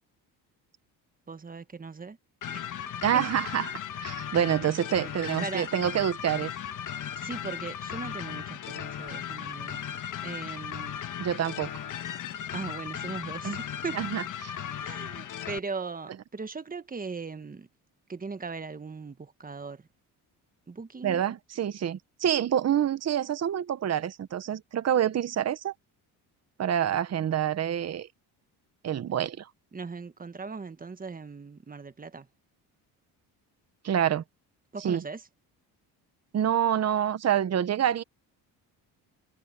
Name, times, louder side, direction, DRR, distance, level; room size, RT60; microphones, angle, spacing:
voice 1, 1.3-2.2 2.5-2.8 3.1-3.2 5.0-5.1 5.4-5.7 6.9-9.8 10.2-11.0 12.5-14.0 14.8-17.7 18.1-19.9 20.7-21.2 29.7-32.3 34.7-35.3, right 4 dB, 20° right, 1.4 m, -39 dB
sound 1, 2.4-15.6, left 9 dB, 50° left, 1.4 m, -36 dB
voice 2, 3.0-6.5 11.2-11.7 13.4-13.6 14.0-14.5 21.0-25.7 26.6-28.1 28.8-29.5 33.8-34.2 34.8-35.0 36.3-38.0, right 10 dB, 40° right, 1.1 m, -27 dB
cardioid pair, 95°, 39 cm